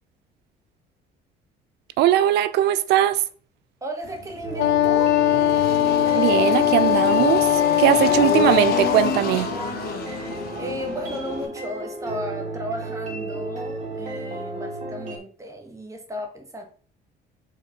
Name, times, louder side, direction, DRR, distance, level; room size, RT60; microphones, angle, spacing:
voice 1, 2.0-3.2 6.1-9.5, right 13 dB, 80° right, 0.5 m, -20 dB
voice 2, 3.8-5.2 10.6-16.6, equal, 20° right, 2.0 m, -34 dB
Engine, 4.0-11.5, left 5 dB, 65° left, 1.9 m, -31 dB
sound 1, 4.4-15.2, right 2 dB, 45° right, 2.4 m, -33 dB
Wind instrument woodwind instrument, 4.6-9.2, left 12 dB, 85° left, 0.4 m, -20 dB
5.3 x 3.8 x 5.3 m
cardioid pair, 110°, 17 cm